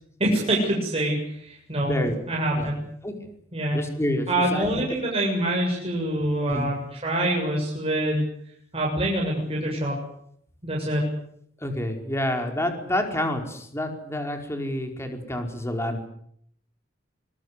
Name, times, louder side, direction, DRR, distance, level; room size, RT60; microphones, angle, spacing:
voice 1, 0.2-2.0 2.3-2.8 3.5-3.8 4.3-6.7 7.0-8.3 8.7-9.9 10.6-11.1, right 1 dB, 30° right, -2 dB, 7.5 m, -25 dB
voice 2, 1.8-2.2 2.5-2.7 3.0-3.1 3.7-5.0 6.5-6.7 11.6-16.1, left 1 dB, 15° left, 4 dB, 4.7 m, -28 dB
25.5 x 22.0 x 8.2 m, 0.69 s
head